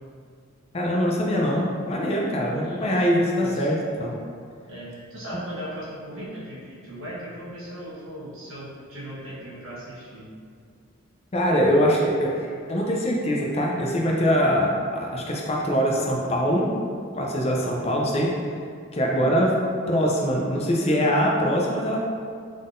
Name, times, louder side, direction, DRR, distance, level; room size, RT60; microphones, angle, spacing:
voice 1, 0.7-4.1 11.3-16.7 17.1-18.3 18.9-19.5 19.9-22.0, equal, 30° left, -2 dB, 0.4 m, -23 dB
voice 2, 2.6-3.0 3.3-3.7 4.6-10.3, equal, 70° right, -7 dB, 1.1 m, -38 dB
3.8 x 3.6 x 2.5 m, 2.2 s
head